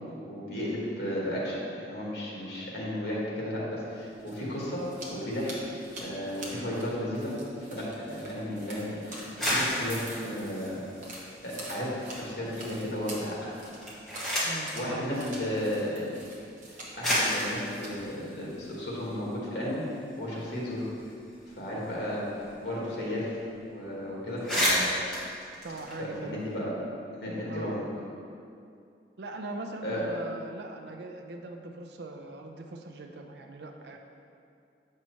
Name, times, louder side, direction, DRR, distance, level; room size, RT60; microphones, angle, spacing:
voice 1, 0.1-5.5 6.0-7.3 7.7-10.8 11.4-13.5 14.7-16.1 16.7-19.8 20.2-20.8 21.5-22.3 22.6-23.4 23.6-25.1 26.0-26.7 27.1-27.8 29.8-30.0, left 1 dB, 60° left, -5 dB, 1.6 m, -34 dB
sound 1, 4.0-19.2, right 1 dB, 45° right, 1.1 m, -46 dB
sound 2, 9.2-11.8 12.2-12.8 13.6-14.7 15.8-15.9 16.6-16.7 17.0-19.3 19.7-19.8 20.0-22.7 22.9-23.0 23.3-23.6 23.9-24.0 24.3-26.5, equal, 5° left, 1.3 m, -32 dB
voice 2, 14.4-15.4 25.6-26.4 27.5-27.9 29.2-34.0, right 2 dB, 65° right, 4 dB, 0.5 m, -41 dB
7.4 x 5.5 x 3.0 m, 2.5 s
head